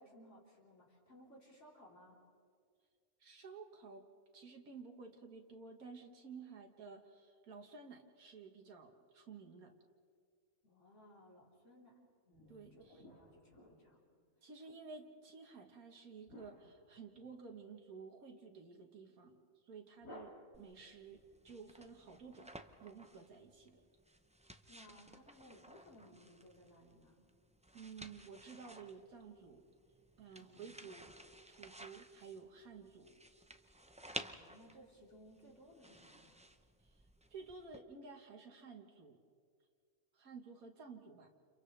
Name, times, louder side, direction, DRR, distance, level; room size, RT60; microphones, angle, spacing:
voice 1, 0.0-2.2 10.6-14.0 14.6-14.8 24.7-27.2 30.4-30.7 34.1-36.4, equal, 55° left, -4 dB, 4.4 m, -61 dB
voice 2, 3.2-4.1 4.3-9.7 12.5-13.0 14.4-19.4 19.6-22.5 22.8-23.8 27.7-29.6 30.2-31.1 31.5-33.2 36.8-37.0 37.3-39.2 40.1-41.3, right 5 dB, 80° right, 2 dB, 1.9 m, -53 dB
sound 1, 12.3-14.4 16.3-17.7 20.0-21.0, left 1 dB, 70° left, 3.1 m, -58 dB
sound 2, 20.5-37.8, right 1 dB, 10° right, 0.3 m, -55 dB
30.0 x 29.5 x 3.4 m, 2.2 s
omnidirectional pair, 1.5 m